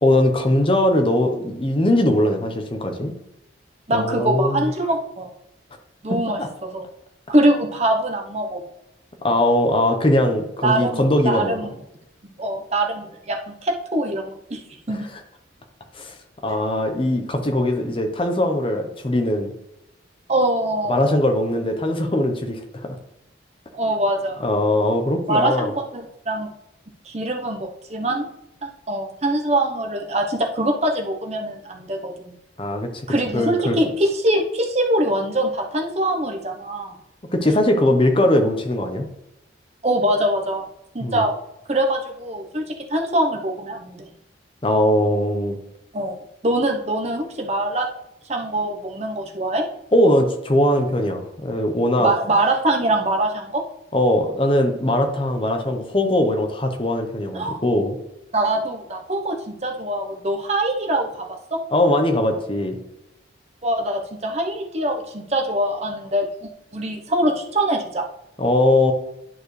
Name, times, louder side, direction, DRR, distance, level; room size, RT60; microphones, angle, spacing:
voice 1, 0.0-3.1 3.9-4.7 6.4-6.5 9.2-11.5 15.9-16.1 16.4-19.5 20.9-23.0 24.4-25.7 32.6-32.9 33.3-33.8 37.3-39.1 41.0-41.3 44.6-45.6 49.9-52.1 53.9-58.0 61.7-62.8 68.4-68.9, left 1 dB, 30° left, 5 dB, 0.9 m, -20 dB
voice 2, 3.9-5.3 6.0-6.8 7.3-8.6 10.6-11.7 12.2-14.6 14.9-15.0 20.3-21.2 23.7-24.4 25.3-26.5 27.0-28.3 28.6-32.3 33.1-36.9 39.8-40.7 40.9-41.3 41.7-42.6 42.9-44.1 45.9-46.2 46.4-47.9 48.3-49.6 52.0-53.6 57.3-57.6 58.3-61.2 63.6-68.0, right 1 dB, 35° right, 2 dB, 0.9 m, -23 dB
11.0 x 4.5 x 3.3 m, 0.87 s
head